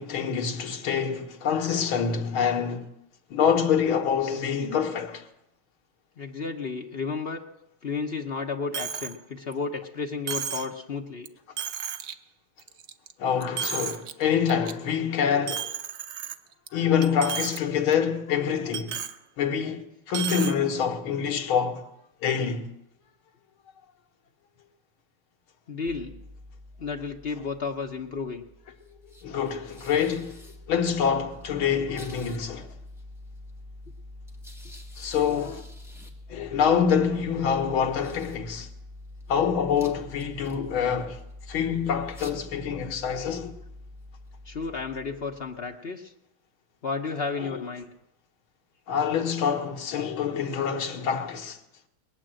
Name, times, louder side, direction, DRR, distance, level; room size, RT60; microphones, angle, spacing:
voice 1, 0.0-2.9 3.3-5.2 13.2-15.7 16.7-19.0 19.4-21.9 22.2-22.7 29.2-30.4 30.7-32.7 35.0-35.6 36.3-38.7 39.3-41.2 41.5-43.6 47.4-47.7 48.9-51.6, left 7 dB, 75° left, 2.1 m, -26 dB
voice 2, 6.2-7.4 7.8-11.3 25.7-26.1 26.8-28.4 44.5-46.1 46.8-47.9, left 4 dB, 50° left, 0.7 m, -32 dB
Coin (dropping), 8.7-9.1 9.5-9.6 10.3-10.7 11.2-11.3 11.6-12.1 12.6-13.1 13.4-14.1 14.5-14.7 15.5-16.7 17.0-17.6 17.9-18.0 18.7-19.2 20.1-20.5, right 8 dB, 85° right, 0.7 m, -33 dB
sound 1, 25.9-45.8, left 1 dB, ahead, 1.5 m, -46 dB
21.0 x 8.9 x 7.6 m
omnidirectional pair, 2.3 m